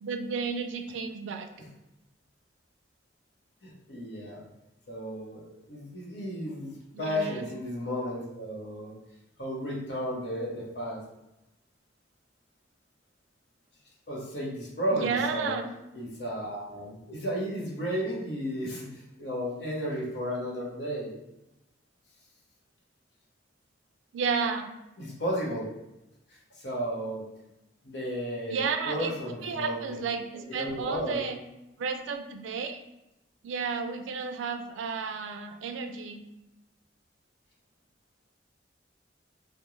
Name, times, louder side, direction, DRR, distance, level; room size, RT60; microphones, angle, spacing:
voice 1, 0.0-1.5 6.9-7.5 14.9-15.7 24.1-24.7 28.5-29.2 29.4-31.4 31.8-32.8 33.4-36.2, right 5 dB, 90° right, 7 dB, 0.3 m, -32 dB
voice 2, 3.6-4.5 4.9-9.0 9.4-11.0 14.1-15.6 15.9-21.1 25.0-25.7 26.3-27.3 27.8-30.0 30.5-31.2, equal, 65° left, -4 dB, 0.8 m, -33 dB
2.4 x 2.1 x 2.9 m, 0.93 s
head